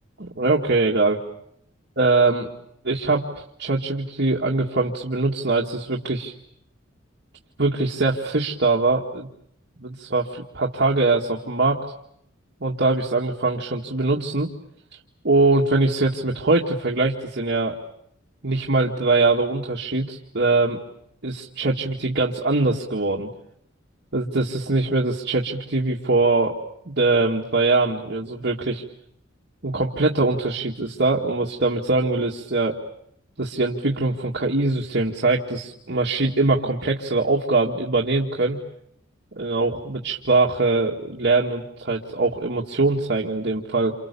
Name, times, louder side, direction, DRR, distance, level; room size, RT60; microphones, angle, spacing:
voice 1, 0.2-1.2 2.0-2.5 2.8-6.3 7.6-9.3 9.8-11.8 12.6-14.5 15.2-17.8 18.4-20.8 21.2-23.3 24.1-26.6 26.9-28.8 29.6-32.8 33.4-38.6 39.4-43.9, right 3 dB, 55° right, 0 dB, 2.1 m, -22 dB
29.5 x 28.5 x 7.0 m, 0.74 s
head